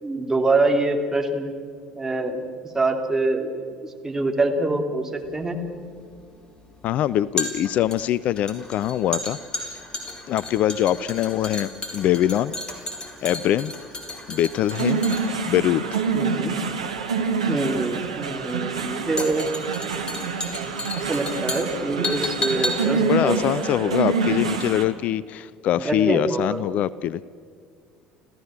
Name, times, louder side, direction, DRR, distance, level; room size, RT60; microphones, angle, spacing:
voice 1, 0.0-1.5 1.9-2.4 2.7-5.6 16.1-16.5 17.5-19.5 20.4-20.6 20.9-23.9 25.8-26.6, right 2 dB, 15° right, 3 dB, 3.0 m, -25 dB
sound 1, 5.2-24.5 24.8-24.9, left 2 dB, 25° left, 4.4 m, -34 dB
voice 2, 6.8-9.8 10.3-12.5 13.2-13.7 14.3-15.0 15.4-16.0 23.0-27.2, left 12 dB, 45° left, 19 dB, 0.5 m, -23 dB
sound 2, 14.7-24.8, right 5 dB, 75° right, 1.8 m, -26 dB
30.0 x 15.0 x 7.6 m, 2.1 s
figure-of-eight pair, 60°, 3 cm